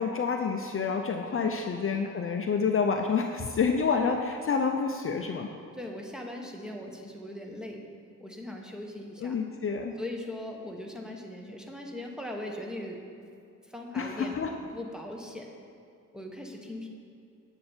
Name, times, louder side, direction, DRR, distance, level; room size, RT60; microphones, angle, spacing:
voice 1, 0.0-5.5 9.2-9.9 14.0-14.5, left 5 dB, 45° left, 4 dB, 0.5 m, -28 dB
voice 2, 5.7-7.8 8.2-9.4 10.0-13.0 13.6-14.4 14.7-15.5 16.1-16.9, left 1 dB, ahead, 0 dB, 1.0 m, -39 dB
8.3 x 6.7 x 4.4 m, 2.5 s
cardioid pair, 100°, 31 cm